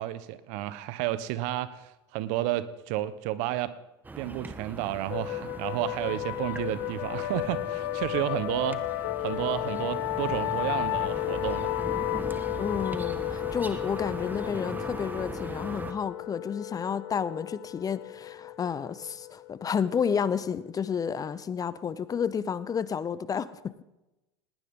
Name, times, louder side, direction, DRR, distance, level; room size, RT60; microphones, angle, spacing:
voice 1, 0.0-3.7 4.2-11.7, right 14 dB, 60° right, 14 dB, 1.2 m, -31 dB
sound 1, 4.0-15.9, right 3 dB, 15° right, 1.5 m, -40 dB
sound 2, 5.1-20.4, left 16 dB, 65° left, 0.6 m, -33 dB
voice 2, 12.6-23.8, left 7 dB, 25° left, 16 dB, 0.9 m, -31 dB
19.5 x 18.5 x 3.8 m, 0.99 s
hypercardioid pair, 90°, 14 cm